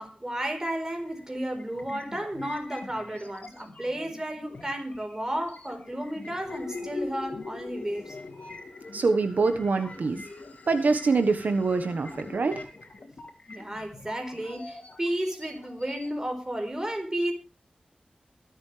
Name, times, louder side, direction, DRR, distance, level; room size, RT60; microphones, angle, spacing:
voice 1, 0.0-8.2 13.5-17.3, right 1 dB, 20° right, 4.4 m, -33 dB
sound 1, 1.0-16.1, left 3 dB, 60° left, 3.2 m, -46 dB
sound 2, 6.5-12.4, left 3 dB, 75° left, 3.2 m, -42 dB
voice 2, 8.9-10.2 10.7-12.6, right 4 dB, 80° right, 1.4 m, -24 dB
24.0 x 8.3 x 3.4 m
wide cardioid pair, 100°, 3 cm